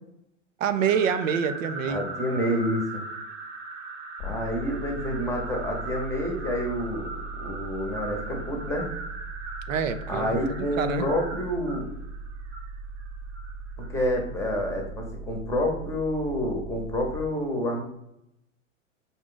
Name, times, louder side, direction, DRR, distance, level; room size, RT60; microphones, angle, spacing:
voice 1, 0.6-2.1 9.7-11.1, right 7 dB, 85° right, 10 dB, 0.5 m, -26 dB
sound 1, 0.7-14.1, right 3 dB, 65° right, 0.9 m, -39 dB
voice 2, 1.9-3.0 4.2-8.9 10.1-11.8 13.9-17.8, left 1 dB, 5° left, 0 dB, 0.8 m, -28 dB
sound 2, 4.2-17.2, right 3 dB, 25° left, 0.4 m, -39 dB
5.1 x 2.4 x 3.8 m, 0.79 s
hypercardioid pair, 125°, 38 cm